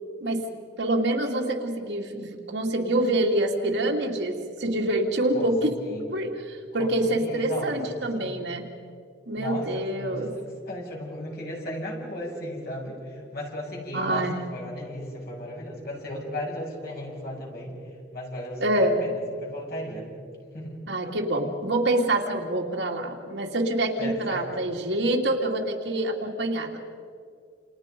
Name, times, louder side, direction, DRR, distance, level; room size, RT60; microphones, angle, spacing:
voice 1, 0.8-5.8 6.1-8.6 9.3-10.3 13.9-14.4 18.6-19.0 20.9-26.8, right 1 dB, 70° right, 1 dB, 2.7 m, -26 dB
voice 2, 6.8-7.8 8.1-8.3 9.3-17.7 18.1-20.1 20.5-20.8 24.0-24.4, left 1 dB, 55° left, -2 dB, 7.4 m, -36 dB
29.5 x 29.0 x 5.3 m, 2.3 s
head